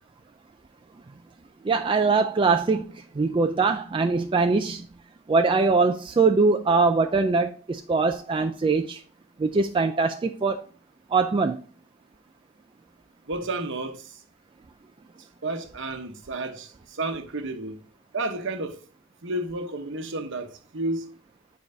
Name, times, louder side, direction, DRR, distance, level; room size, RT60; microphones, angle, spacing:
voice 1, 1.6-4.9 5.3-9.0 9.4-10.6 11.1-11.6, right 4 dB, 25° right, 0.3 m, -22 dB
voice 2, 13.3-14.2 15.4-17.8 18.1-18.8 19.2-21.1, right 2 dB, 60° right, 1.0 m, -31 dB
8.7 x 4.7 x 2.7 m
head